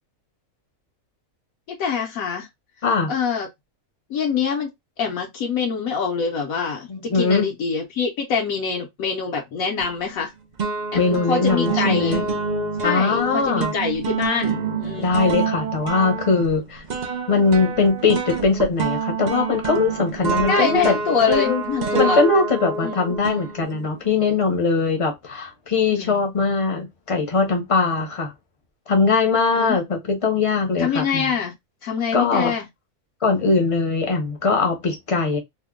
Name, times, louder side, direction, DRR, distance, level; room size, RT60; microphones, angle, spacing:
voice 1, 1.7-2.5 3.1-3.5 4.1-4.7 5.0-10.3 10.9-12.2 12.8-15.2 20.5-22.3 22.8-23.1 25.9-26.2 29.5-29.8 30.8-31.5 31.8-32.7, left 5 dB, 75° left, 1.1 m, -25 dB
voice 2, 6.9-7.5 10.9-12.2 12.8-13.7 15.0-16.8 17.3-21.0 21.3-21.6 22.0-28.3 28.9-31.2 32.1-32.5 33.2-35.4, left 4 dB, 35° left, 0.6 m, -21 dB
sound 1, 9.8-10.3 10.6-24.0, right 4 dB, 80° right, 0.4 m, -27 dB
2.9 x 2.1 x 3.5 m
omnidirectional pair, 1.5 m